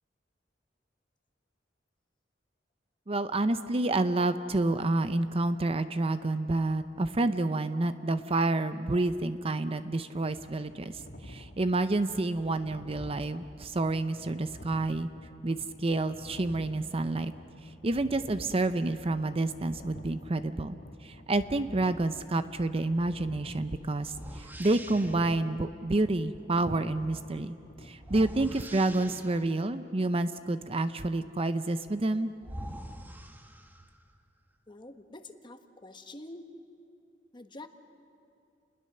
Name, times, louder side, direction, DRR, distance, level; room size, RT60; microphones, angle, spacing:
voice 1, 3.1-15.1 15.4-17.3 17.8-27.6 27.8-32.3, right 2 dB, 35° right, 11 dB, 0.6 m, -29 dB
sound 1, 10.3-28.3, left 1 dB, 70° left, 1.9 m, -49 dB
sound 2, 24.1-25.3 28.0-29.6 31.9-32.0 32.4-34.0, right 1 dB, 10° right, 1.1 m, -44 dB
voice 2, 34.7-36.5 37.3-37.7, left 2 dB, 25° left, 7 dB, 1.2 m, -46 dB
29.5 x 20.5 x 6.7 m, 2.7 s
head